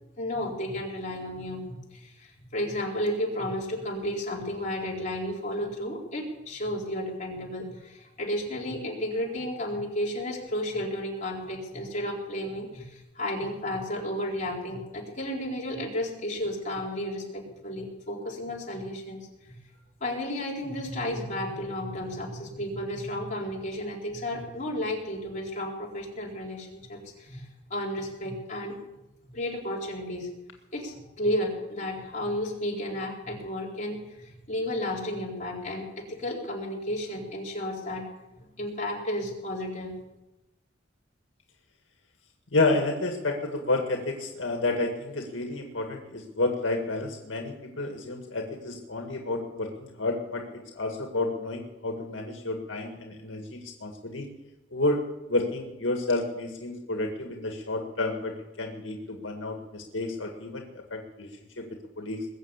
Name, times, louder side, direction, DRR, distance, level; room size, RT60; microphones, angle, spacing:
voice 1, 0.2-19.2 19.5-19.6 20.0-28.8 29.3-30.3 30.7-38.1 38.6-40.0, left 1 dB, 40° left, -3 dB, 4.2 m, -33 dB
voice 2, 42.5-54.3 54.7-55.0 55.3-61.3 61.6-61.7 62.0-62.2, left 2 dB, 85° left, 2 dB, 2.0 m, -30 dB
21.0 x 7.7 x 8.3 m, 0.99 s
head